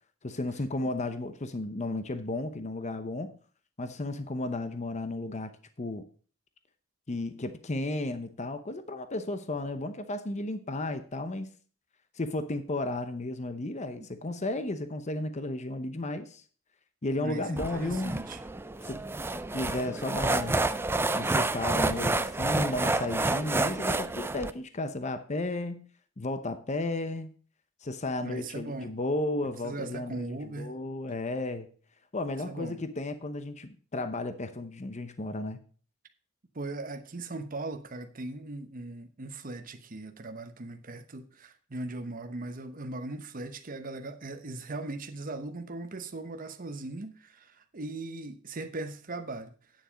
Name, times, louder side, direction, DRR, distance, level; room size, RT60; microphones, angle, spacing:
voice 1, 0.2-3.3 3.8-5.5 5.8-6.0 7.1-11.5 12.2-16.4 17.0-18.2 18.8-19.0 19.5-20.6 21.1-25.9 26.2-27.3 27.8-31.7 32.1-35.6, left 2 dB, 35° left, 10 dB, 0.8 m, -33 dB
voice 2, 17.2-18.4 28.2-28.9 29.6-30.8 32.5-32.8 36.5-49.5, right 2 dB, 45° right, 7 dB, 0.9 m, -39 dB
sound 1, 17.6-24.5, right 2 dB, 10° right, 0.4 m, -29 dB
9.3 x 7.3 x 5.1 m, 0.42 s
head